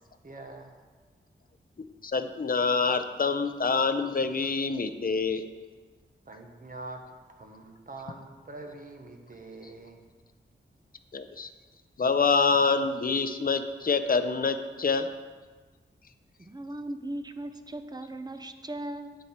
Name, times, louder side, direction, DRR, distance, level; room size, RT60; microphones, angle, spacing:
voice 1, 0.2-0.7 6.3-7.0 7.4-10.0, right 2 dB, 40° right, 3 dB, 1.1 m, -44 dB
voice 2, 2.0-5.4 11.1-11.5 12.0-15.1, left 4 dB, 45° left, 9 dB, 0.6 m, -26 dB
voice 3, 16.4-19.2, right 1 dB, 20° right, 8 dB, 0.6 m, -38 dB
9.2 x 7.6 x 4.3 m, 1.4 s
wide cardioid pair, 115°, 21 cm